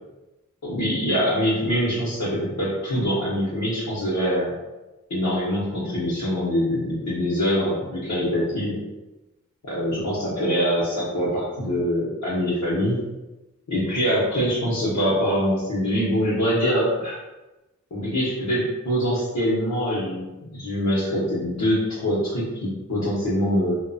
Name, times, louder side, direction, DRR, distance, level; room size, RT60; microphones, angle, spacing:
voice 1, 0.6-4.5 5.1-8.8 9.7-13.0 13.7-17.2 17.9-23.8, equal, 65° left, -10 dB, 0.9 m, -24 dB
2.8 x 2.1 x 2.6 m, 1.0 s
wide cardioid pair, 50°, 31 cm